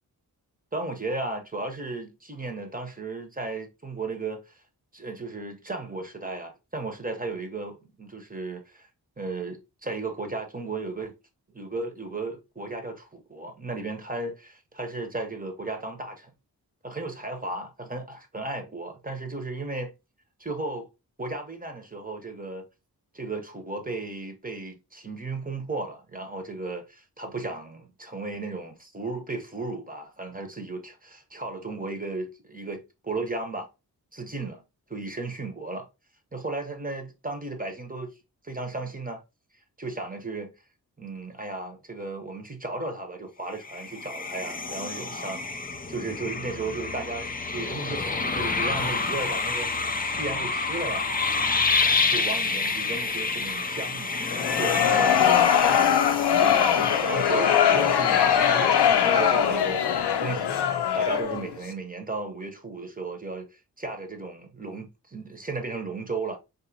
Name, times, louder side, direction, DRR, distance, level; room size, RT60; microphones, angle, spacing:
voice 1, 0.7-4.6 4.9-8.9 9.2-11.1 11.5-16.3 16.8-19.9 20.4-20.9 21.2-22.7 23.1-33.7 34.1-34.6 34.9-35.9 36.3-38.1 38.4-39.2 39.8-40.5 41.0-49.7 50.0-51.1 52.1-59.8 60.2-60.7 60.9-66.4, right 3 dB, 20° right, 0.8 m, -35 dB
sound 1, 43.6-59.8, left 4 dB, 25° left, 0.4 m, -29 dB
sound 2, 54.3-61.5, left 8 dB, 85° left, 0.5 m, -21 dB
3.9 x 2.7 x 2.7 m
wide cardioid pair, 85°, 39 cm